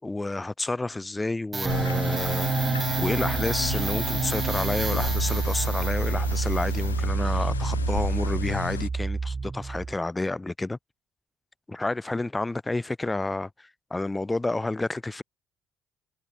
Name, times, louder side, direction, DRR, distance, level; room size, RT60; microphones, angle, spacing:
voice 1, 0.0-2.5 3.0-10.8 11.7-15.2, left 2 dB, 15° left, 3.5 m, -30 dB
sound 1, 1.5-10.0, right 4 dB, 30° right, 1.9 m, -28 dB
sound 2, 1.7-8.9, left 8 dB, 85° left, 0.9 m, -34 dB
figure-of-eight pair, 45°, 0 cm